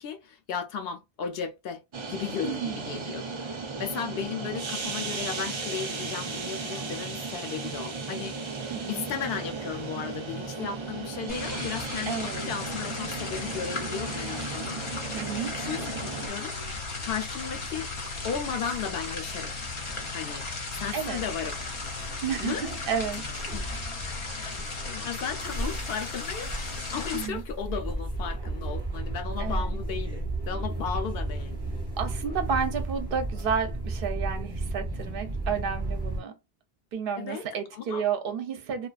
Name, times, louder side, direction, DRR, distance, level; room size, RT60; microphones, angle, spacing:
voice 1, 0.0-1.8 2.1-3.5 3.8-8.4 8.9-14.8 15.6-16.5 17.0-17.9 18.2-19.5 20.1-20.5 20.7-21.6 22.4-22.6 23.5-23.6 24.8-31.6 37.2-37.4 37.7-38.0, left 7 dB, 70° left, 0.8 m, -35 dB
sound 1, 1.9-16.3, right 4 dB, 45° right, 0.4 m, -35 dB
voice 2, 2.4-3.1 8.7-9.1 12.1-12.5 15.1-15.6 20.9-21.2 22.2-23.6 27.1-27.4 29.4-29.8 32.0-36.4 36.9-38.9, right 6 dB, 65° right, 0.7 m, -31 dB
sound 2, 11.3-27.3, left 3 dB, 50° left, 0.3 m, -36 dB
sound 3, 16.6-36.2, right 2 dB, 25° right, 0.8 m, -35 dB
2.4 x 2.3 x 2.3 m
omnidirectional pair, 1.1 m